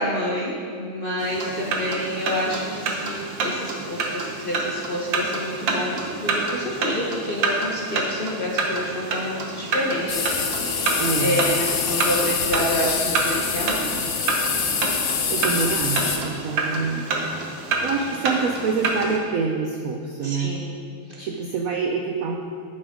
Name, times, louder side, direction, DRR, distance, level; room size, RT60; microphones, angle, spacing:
voice 1, 0.0-14.2 20.2-20.7 21.1-21.3, equal, 45° left, -4 dB, 0.7 m, -28 dB
sound 1, 1.2-19.2, right 3 dB, 65° right, 1.7 m, -28 dB
sound 2, 10.1-16.2, left 6 dB, 90° left, 0.6 m, -25 dB
voice 2, 11.0-11.4 15.3-17.1 17.8-20.5 21.2-22.4, right 5 dB, 85° right, 2 dB, 0.7 m, -26 dB
11.0 x 6.1 x 5.0 m, 2.3 s
omnidirectional pair, 2.3 m